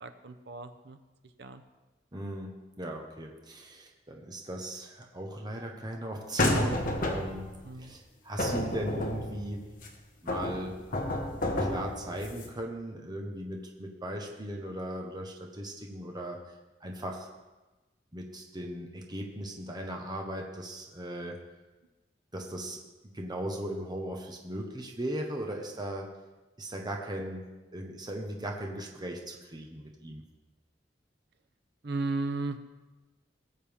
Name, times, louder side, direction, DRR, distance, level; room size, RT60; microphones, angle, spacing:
voice 1, 0.0-1.0 1.4-1.6 7.6-8.0 31.8-32.6, right 3 dB, 65° right, 8 dB, 0.8 m, -35 dB
voice 2, 2.1-2.5 2.8-7.5 7.8-9.7 10.2-10.8 11.6-16.4 16.8-17.3 18.1-21.4 22.3-22.8 23.1-26.1 26.6-30.2, right 1 dB, 25° right, 1 dB, 1.1 m, -38 dB
sound 1, 6.4-7.5 8.4-9.9 10.3-12.5, left 1 dB, 50° left, 1.5 m, -30 dB
18.5 x 7.3 x 3.6 m, 1.2 s
head